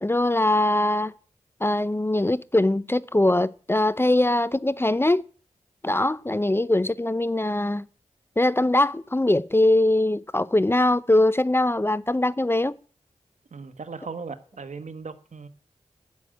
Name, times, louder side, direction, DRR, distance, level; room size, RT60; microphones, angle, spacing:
voice 1, 0.0-1.1 1.6-5.2 5.8-7.9 8.4-12.7, left 1 dB, 20° left, 0.5 m, -22 dB
voice 2, 13.5-15.5, right 5 dB, 65° right, 1.3 m, -38 dB
11.0 x 6.5 x 9.1 m
cardioid pair, 50°, 13 cm